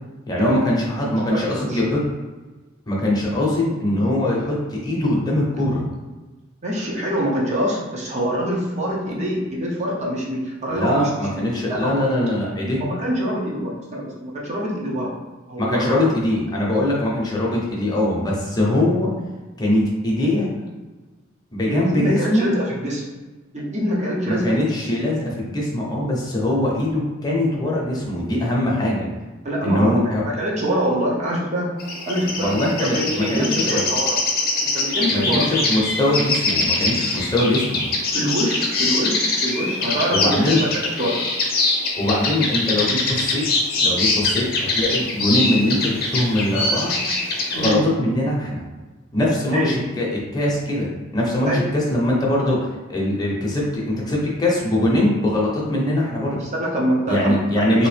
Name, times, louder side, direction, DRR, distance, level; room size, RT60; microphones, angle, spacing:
voice 1, 0.3-2.0 2.9-5.8 10.7-12.8 15.6-19.1 19.6-20.5 21.5-22.5 24.3-29.1 29.6-30.2 32.3-33.8 35.1-37.8 40.1-40.6 42.0-43.4 43.8-46.9 47.5-48.6 49.1-52.6 52.9-56.4 57.1-57.9, left 1 dB, 20° left, -4 dB, 0.8 m, -22 dB
voice 2, 1.3-1.8 6.6-11.1 11.7-12.0 12.8-15.1 15.5-16.0 21.7-23.0 23.5-24.5 29.4-29.9 30.2-31.7 32.0-32.6 32.9-34.2 34.6-35.5 38.1-41.2 47.5-47.8 49.5-49.7 51.4-51.6 56.4-57.9, equal, 35° right, -4 dB, 0.8 m, -25 dB
sound 1, 31.8-47.7, left 2 dB, 50° left, 0.7 m, -23 dB
3.2 x 2.9 x 3.3 m, 1.2 s
head